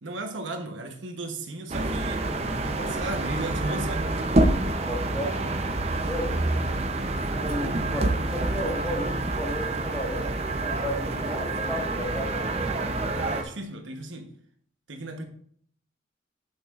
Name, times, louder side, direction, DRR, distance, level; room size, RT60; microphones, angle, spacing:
voice 1, 0.0-2.3 2.9-4.1 13.1-14.3 14.9-15.2, right 2 dB, 85° right, 4 dB, 1.0 m, -35 dB
sound 1, 1.7-13.4, right 2 dB, 35° right, 0.6 m, -27 dB
voice 2, 4.9-5.4 6.0-6.4 7.1-10.4 10.6-12.4, equal, 5° left, -2 dB, 1.4 m, -33 dB
8.6 x 6.6 x 2.5 m, 0.62 s
head